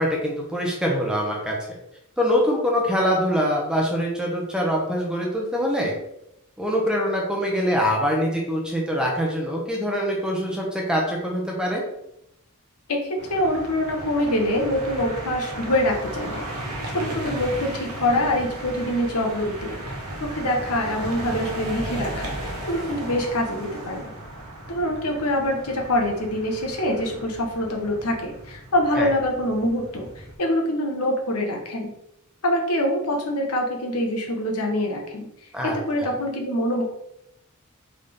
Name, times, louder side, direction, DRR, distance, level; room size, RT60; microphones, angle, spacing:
voice 1, 0.0-1.8 2.2-6.0 6.6-11.8 28.9-29.1 35.5-36.1, equal, 5° right, -1 dB, 0.8 m, -24 dB
voice 2, 12.9-19.7 20.2-24.1 24.7-31.9 32.4-35.3 35.6-36.8, left 1 dB, 80° left, 1 dB, 1.0 m, -25 dB
sound 1, 13.2-30.3, right 1 dB, 80° right, 1.2 m, -35 dB
4.0 x 3.6 x 3.4 m, 0.81 s
head